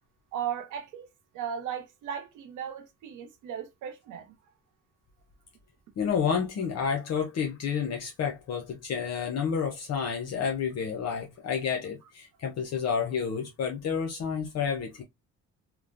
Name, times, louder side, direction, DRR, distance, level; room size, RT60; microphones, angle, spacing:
voice 1, 0.3-1.1 1.3-4.3, right 8 dB, 85° right, 0.8 m, -36 dB
voice 2, 6.0-15.0, left 6 dB, 60° left, 0.6 m, -30 dB
3.0 x 2.1 x 2.4 m
cardioid pair, 90°, 30 cm